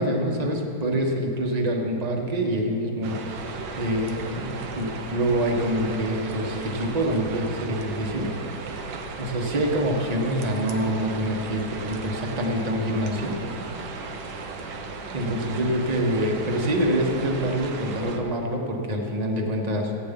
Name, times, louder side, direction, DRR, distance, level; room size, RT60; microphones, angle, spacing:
voice 1, 0.0-3.2 3.4-3.5 3.8-8.3 9.2-13.4 15.1-19.9, right 1 dB, 25° right, 1 dB, 1.2 m, -26 dB
sound 1, 3.0-18.2, right 4 dB, 80° right, 1.6 m, -36 dB
15.0 x 9.6 x 5.3 m, 2.7 s
omnidirectional pair, 2.0 m